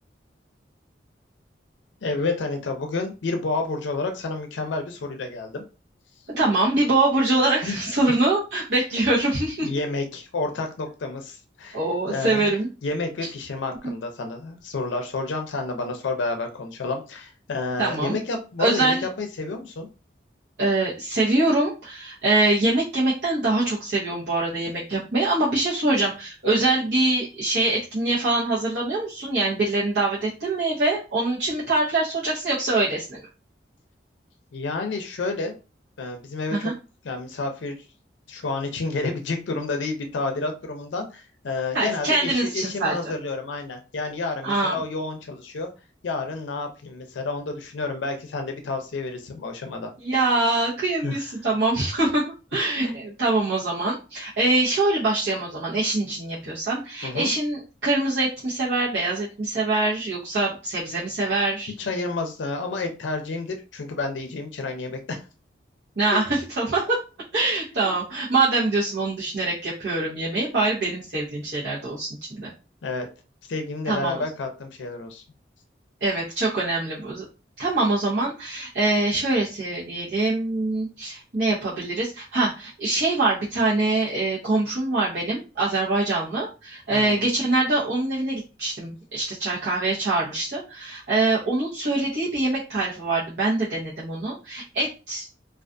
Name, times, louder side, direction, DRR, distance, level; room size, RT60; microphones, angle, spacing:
voice 1, 2.0-5.6 7.6-7.8 8.9-9.0 9.6-11.8 12.1-12.5 12.8-19.9 34.5-35.5 36.0-36.7 37.0-37.8 38.3-45.7 46.0-49.9 51.0-51.2 52.8-53.0 57.0-57.3 61.8-65.2 66.1-66.2 67.8-68.0 72.8-73.1 73.5-75.2 86.9-87.2, left 3 dB, 90° left, 5 dB, 0.4 m, -30 dB
voice 2, 6.3-9.7 11.7-12.7 17.8-18.1 18.6-19.1 20.6-33.2 36.5-36.7 41.7-42.9 44.4-44.8 50.0-52.2 52.5-61.7 66.0-67.0 67.3-72.5 73.9-74.2 76.0-77.2 77.6-95.3, right 2 dB, 70° right, -8 dB, 0.8 m, -24 dB
2.4 x 2.3 x 2.5 m, 0.31 s
head